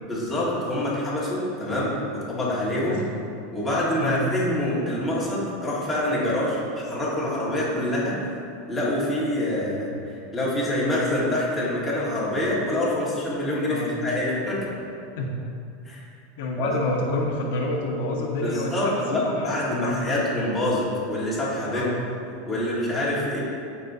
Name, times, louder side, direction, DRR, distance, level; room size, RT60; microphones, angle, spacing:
voice 1, 0.1-3.0 3.5-8.2 8.7-14.6 15.8-16.0 16.6-16.7 18.4-21.9 22.4-23.4, left 1 dB, 5° left, -8 dB, 1.6 m, -26 dB
voice 2, 4.0-4.3 13.7-14.0 15.2-15.3 16.4-20.1 21.7-22.0, left 2 dB, 60° left, -1 dB, 1.1 m, -28 dB
14.5 x 5.4 x 2.7 m, 2.6 s
supercardioid pair, 175°, 0 cm